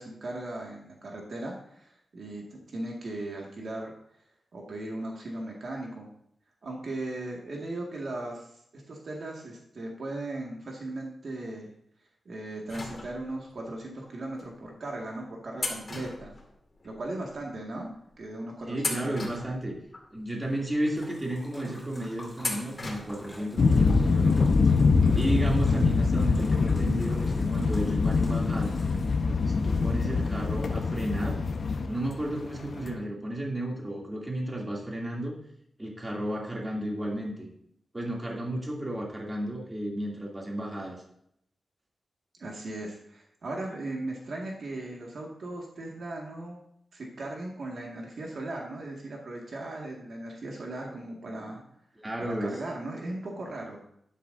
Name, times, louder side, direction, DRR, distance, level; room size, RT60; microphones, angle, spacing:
voice 1, 0.0-3.9 4.5-6.1 6.6-8.5 8.7-11.7 12.3-16.4 16.8-17.9 18.2-19.4 42.4-46.6 46.9-51.6 52.2-53.8, right 2 dB, 60° right, -1 dB, 1.9 m, -37 dB
sound 1, 12.7-13.5 14.4-14.5 15.6-17.0 17.3-17.4 18.1-18.3 18.8-20.1 20.6-20.7 22.4-23.4 23.7-23.8 24.9-25.0 25.3-25.4, left 2 dB, 35° left, 2.1 m, -37 dB
voice 2, 18.7-19.7 20.1-24.5 25.1-28.8 29.5-31.4 31.8-35.3 35.8-37.5 37.9-41.0 52.0-52.6, right 1 dB, 20° right, -2 dB, 2.7 m, -33 dB
Splash splatter, 20.3-29.4, left 1 dB, 10° left, 4.2 m, -49 dB
sound 2, 23.6-32.9, left 4 dB, 55° left, 0.9 m, -24 dB
11.5 x 10.0 x 2.7 m, 0.72 s
wide cardioid pair, 115°, 0 cm